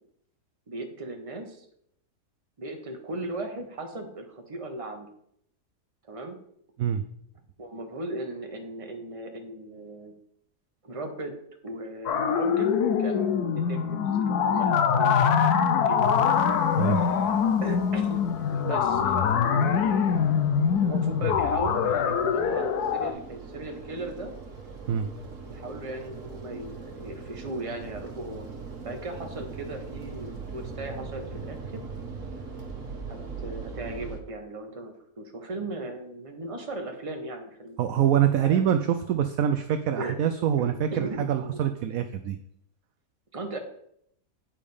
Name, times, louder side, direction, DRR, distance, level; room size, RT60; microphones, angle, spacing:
voice 1, 0.7-1.7 2.6-5.1 6.1-6.4 7.6-10.1 10.8-11.4 11.6-16.3 16.9-19.9 20.8-24.3 25.4-28.5 28.8-31.8 33.1-37.8 38.3-38.7 40.0-40.2 40.5-41.6 42.0-42.1 43.3-43.6, right 2 dB, 25° right, 4 dB, 1.1 m, -37 dB
sound 1, 12.1-23.1, left 7 dB, 70° left, 1.2 m, -24 dB
sound 2, 16.0-34.2, right 4 dB, 55° right, 1.5 m, -41 dB
voice 2, 37.8-42.4, right 9 dB, 70° right, 9 dB, 0.9 m, -25 dB
8.7 x 5.0 x 5.4 m, 0.71 s
omnidirectional pair, 1.8 m